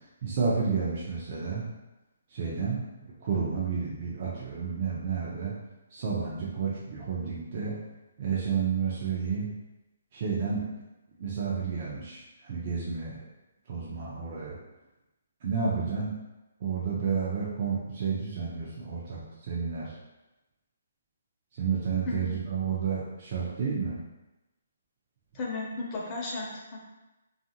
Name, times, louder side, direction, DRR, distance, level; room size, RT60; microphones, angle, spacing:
voice 1, 0.2-1.6 2.3-2.8 3.2-5.5 5.9-7.7 8.2-9.5 10.1-10.7 11.2-13.2 13.7-14.6 15.4-16.1 16.6-19.2 19.5-19.9 21.5-24.0, right 6 dB, 45° right, -6 dB, 0.6 m, -30 dB
voice 2, 22.0-22.4 25.3-26.8, left 3 dB, 30° left, -3 dB, 0.7 m, -34 dB
2.7 x 2.5 x 2.7 m, 1.0 s
figure-of-eight pair, 140°, 0 cm